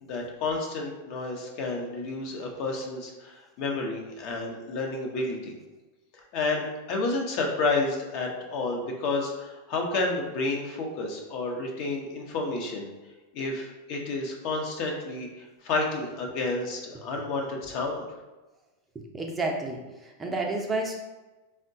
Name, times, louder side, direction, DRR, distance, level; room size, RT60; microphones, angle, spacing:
voice 1, 0.0-5.5 6.3-12.9 13.3-15.3 15.6-18.0, left 3 dB, 55° left, 1 dB, 0.6 m, -30 dB
voice 2, 18.9-21.0, right 2 dB, 20° right, 1 dB, 0.5 m, -31 dB
3.5 x 2.1 x 2.6 m, 1.1 s
hypercardioid pair, 100°, 0 cm